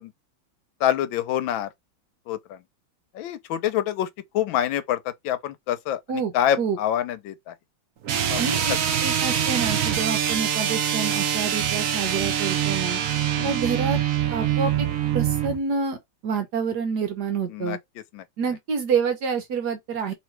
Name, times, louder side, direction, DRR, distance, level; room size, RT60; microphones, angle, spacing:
voice 1, 0.8-1.7 2.3-2.6 3.1-4.1 4.3-5.0 5.2-7.5 8.3-8.4 13.4-13.6 17.5-17.8 18.1-18.2, left 11 dB, 75° left, 1.3 m, -26 dB
voice 2, 6.1-6.8 8.4-13.0 13.4-14.0 14.3-14.9 15.1-17.8 18.4-20.1, right 5 dB, 60° right, 1.3 m, -28 dB
sound 1, 8.0-15.6, right 9 dB, 90° right, 0.7 m, -24 dB
3.1 x 3.1 x 4.5 m
omnidirectional pair, 2.2 m